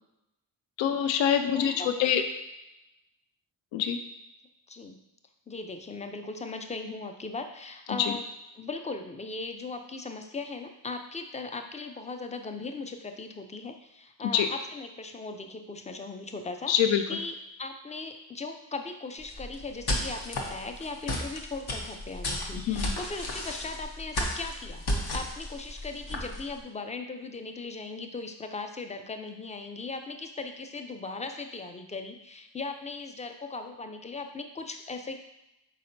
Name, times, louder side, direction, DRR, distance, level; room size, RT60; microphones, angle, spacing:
voice 1, 0.8-2.2 3.7-4.0 8.0-8.2 14.2-14.5 16.7-17.0 22.6-22.9, left 9 dB, 70° left, 8 dB, 0.5 m, -25 dB
voice 2, 1.5-1.9 4.7-5.0 5.5-8.3 8.6-35.3, left 3 dB, 15° left, 6 dB, 0.4 m, -38 dB
sound 1, 19.2-26.6, left 1 dB, 55° left, 1.0 m, -33 dB
4.1 x 4.0 x 2.6 m, 0.91 s
supercardioid pair, 45°, 46 cm